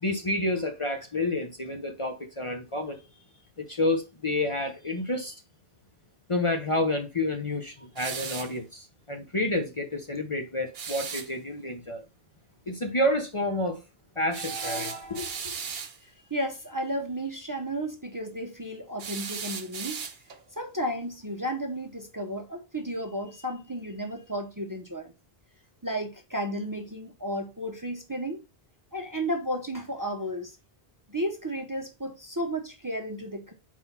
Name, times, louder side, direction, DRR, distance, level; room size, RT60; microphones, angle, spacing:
voice 1, 0.0-3.0 3.6-5.4 6.3-12.0 12.7-13.8 14.2-15.6, left 1 dB, 35° left, 0.8 m, -29 dB
sound 1, 8.0-8.6 10.7-11.3 14.3-16.0 19.0-20.4, right 6 dB, 55° right, 0.8 m, -36 dB
voice 2, 16.0-20.0 20.6-25.1 25.8-28.4 28.9-30.6 31.1-33.5, equal, 20° right, 0.8 m, -33 dB
4.6 x 3.9 x 5.5 m
omnidirectional pair, 1.0 m